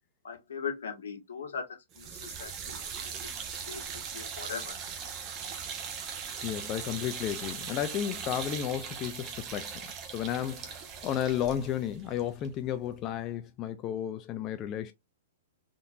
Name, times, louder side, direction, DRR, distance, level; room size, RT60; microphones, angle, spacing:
voice 1, 0.2-3.1 3.7-4.8, left 6 dB, 90° left, 1.2 m, -40 dB
sound 1, 1.9-13.0, right 7 dB, 30° right, 0.7 m, -40 dB
voice 2, 6.4-9.9 10.1-14.9, left 10 dB, 30° left, 0.3 m, -33 dB
3.7 x 2.6 x 2.2 m
hypercardioid pair, 145°, 0 cm